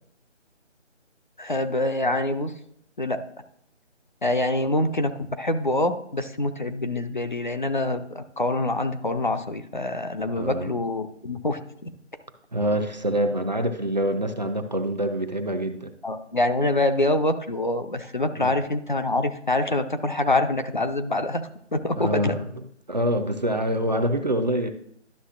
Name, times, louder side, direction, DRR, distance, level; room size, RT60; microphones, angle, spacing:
voice 1, 1.4-2.5 3.0-3.2 4.2-11.6 16.0-21.4 21.7-22.3, left 2 dB, 40° left, 8 dB, 0.5 m, -25 dB
voice 2, 10.4-10.7 12.5-15.9 18.4-18.6 22.0-22.5 22.9-24.7, right 1 dB, 40° right, 6 dB, 0.5 m, -25 dB
11.5 x 6.2 x 2.4 m, 0.70 s
figure-of-eight pair, 160°, 36 cm